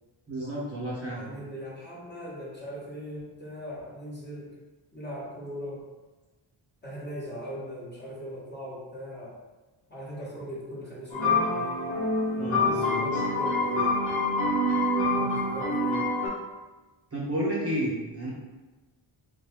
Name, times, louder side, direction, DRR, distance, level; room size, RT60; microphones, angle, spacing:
voice 1, 0.3-1.3 12.4-13.2 17.1-18.3, right 1 dB, 30° right, -7 dB, 0.8 m, -31 dB
voice 2, 1.1-4.5 4.9-5.9 6.8-9.4 9.9-11.8 12.4-14.4 15.1-16.3, equal, 20° left, -7 dB, 1.0 m, -39 dB
sound 1, 11.1-16.3, left 2 dB, 80° left, 1.2 m, -26 dB
3.6 x 2.2 x 3.4 m, 1.2 s
wide cardioid pair, 145°, 48 cm